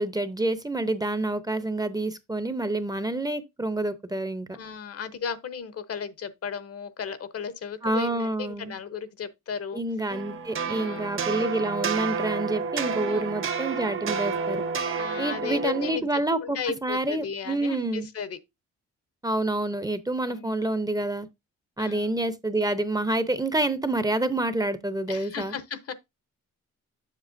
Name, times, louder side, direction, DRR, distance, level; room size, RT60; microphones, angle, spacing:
voice 1, 0.0-4.6 7.8-8.7 9.7-14.6 15.2-18.1 19.2-21.3 21.8-25.5, right 2 dB, 10° right, 0.7 m, -28 dB
voice 2, 4.5-9.8 10.6-11.1 13.1-13.2 15.0-18.4 20.3-20.6 21.8-22.1 25.1-25.9, left 6 dB, 50° left, 0.9 m, -35 dB
sound 1, 10.1-16.0, right 5 dB, 45° right, 1.0 m, -30 dB
7.5 x 6.6 x 2.6 m
cardioid pair, 90°, 30 cm